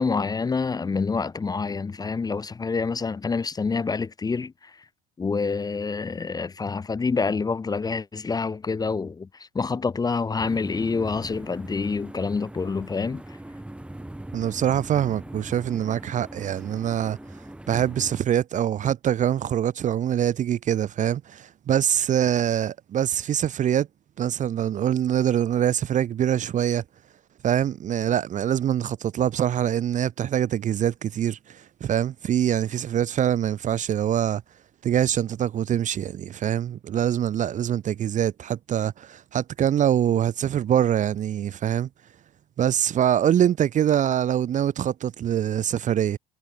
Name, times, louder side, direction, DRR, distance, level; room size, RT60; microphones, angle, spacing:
voice 1, 0.0-4.5 5.2-13.2, left 4 dB, 20° left, 1.0 m, -27 dB
sound 1, 10.4-18.2, right 1 dB, 5° right, 2.4 m, -41 dB
voice 2, 14.3-17.2 17.7-23.9 24.2-26.8 27.4-34.4 34.8-41.9 42.6-46.2, right 10 dB, 40° right, 0.8 m, -24 dB
supercardioid pair, 105°, 20 cm